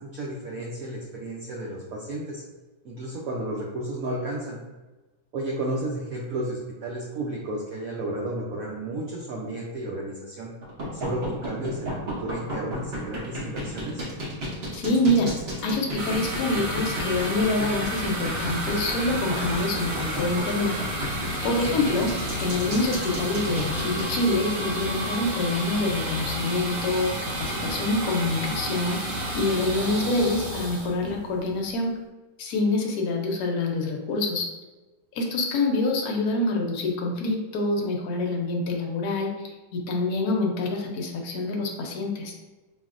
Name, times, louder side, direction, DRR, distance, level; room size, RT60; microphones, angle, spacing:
voice 1, 0.0-2.4 2.8-4.6 5.3-10.5 10.9-14.1 21.4-21.9, right 1 dB, 90° right, -2 dB, 0.7 m, -32 dB
sound 1, 10.6-24.0, equal, 50° right, 0.7 m, -33 dB
voice 2, 14.7-15.3 15.6-20.8 21.4-22.1 22.4-32.0 32.4-34.5 35.1-42.3, left 2 dB, 65° left, 1 dB, 0.9 m, -26 dB
sound 2, 16.0-31.7, equal, 70° right, 2.2 m, -31 dB
5.0 x 2.6 x 2.4 m, 1.2 s
omnidirectional pair, 2.1 m